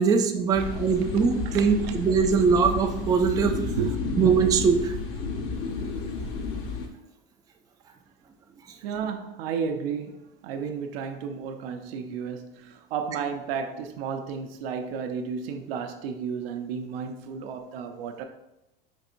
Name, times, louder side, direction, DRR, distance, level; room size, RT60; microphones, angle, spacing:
voice 1, 0.0-3.6 4.2-4.9, right 5 dB, 15° right, 0.3 m, -22 dB
sound 1, 0.5-6.9, left 4 dB, 50° left, 0.7 m, -32 dB
voice 2, 1.5-1.9 3.8-4.2 8.8-18.2, right 6 dB, 80° right, 0.6 m, -33 dB
5.2 x 2.8 x 2.5 m
hypercardioid pair, 95°, 30 cm